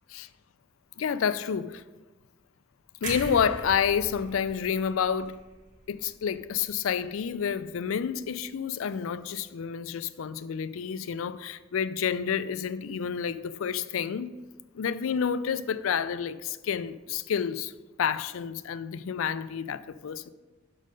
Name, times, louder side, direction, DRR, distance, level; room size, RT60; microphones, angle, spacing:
voice 1, 1.0-1.8 3.0-5.4 5.9-14.3 14.7-17.7 18.0-20.3, left 7 dB, 80° left, 0.4 m, -29 dB
sound 1, 3.0-7.1 7.4-7.6, right 1 dB, 40° right, 1.6 m, -41 dB
6.3 x 5.2 x 5.5 m
head